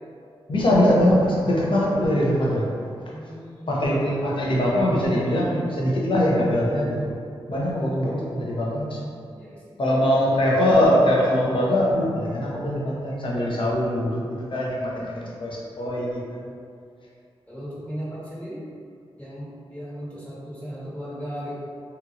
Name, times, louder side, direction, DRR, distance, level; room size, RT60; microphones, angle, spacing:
voice 1, 0.5-2.7 3.7-7.1 7.5-9.0 9.8-14.2 14.5-16.5, left 1 dB, 55° left, -4 dB, 0.7 m, -22 dB
voice 2, 3.1-4.1 9.3-10.0 14.9-15.3 17.5-18.6 19.2-21.5, equal, 15° left, -9 dB, 1.4 m, -36 dB
2.9 x 2.7 x 2.4 m, 2.3 s
cardioid pair, 55°, 10 cm